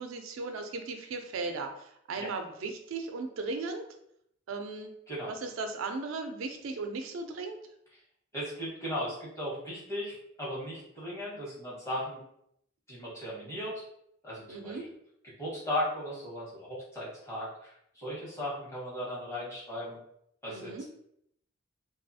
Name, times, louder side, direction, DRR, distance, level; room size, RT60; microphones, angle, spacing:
voice 1, 0.0-3.8 4.5-4.9 5.3-7.6 14.5-14.9 20.5-20.8, right 3 dB, 90° right, 5 dB, 0.4 m, -37 dB
voice 2, 8.3-12.2 12.9-13.8 14.2-14.9 15.2-17.7 17.9-20.0 20.4-20.8, left 1 dB, 15° left, -8 dB, 1.1 m, -37 dB
2.6 x 2.3 x 2.6 m, 0.73 s
head